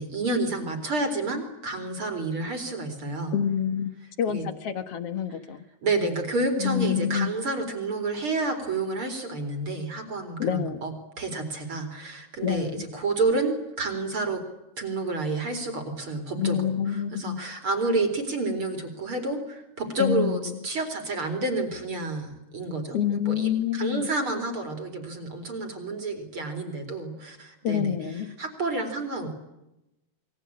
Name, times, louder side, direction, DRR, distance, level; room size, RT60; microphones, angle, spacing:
voice 1, 0.0-3.4 4.3-4.5 5.8-14.4 14.8-16.6 16.9-28.0 28.4-29.3, right 2 dB, 35° right, 7 dB, 4.5 m, -29 dB
voice 2, 3.3-5.6 6.6-7.3 10.4-10.8 12.4-12.9 16.4-17.4 20.0-20.6 22.9-24.1 27.6-28.4, left 9 dB, 55° left, 10 dB, 1.9 m, -27 dB
28.5 x 23.0 x 8.8 m, 0.93 s
omnidirectional pair, 4.5 m